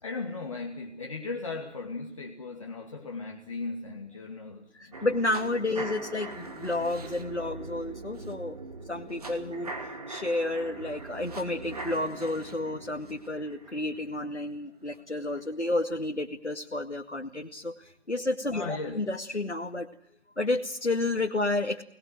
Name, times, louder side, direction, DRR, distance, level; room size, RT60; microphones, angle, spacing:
voice 1, 0.0-5.0 5.7-5.9 18.5-19.1, left 3 dB, 30° left, 1 dB, 2.3 m, -37 dB
voice 2, 4.7-8.6 8.9-19.9 20.4-21.8, left 2 dB, 85° left, 2 dB, 2.3 m, -31 dB
sound 1, 4.9-15.0 15.4-15.5, right 3 dB, 35° right, 2.8 m, -42 dB
26.0 x 20.5 x 7.8 m, 0.70 s
figure-of-eight pair, 160°, 34 cm